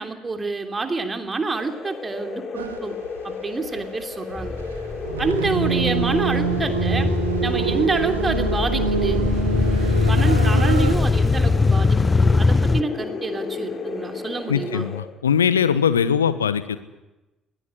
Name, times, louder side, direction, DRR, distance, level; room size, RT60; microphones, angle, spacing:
voice 1, 0.0-3.0 3.2-4.6 5.2-7.1 7.4-9.3 10.0-14.9, right 3 dB, 25° right, 6 dB, 3.1 m, -27 dB
sound 1, 1.5-15.0, left 4 dB, 40° left, 3.9 m, -33 dB
sound 2, 2.5-2.8 3.0-10.9, right 6 dB, 80° right, 1.5 m, -26 dB
sound 3, 4.4-12.8, left 3 dB, 20° left, 0.9 m, -21 dB
voice 2, 14.5-16.8, left 7 dB, 80° left, 14 dB, 1.1 m, -21 dB
21.0 x 17.5 x 10.0 m, 1.0 s
figure-of-eight pair, 50°, 0 cm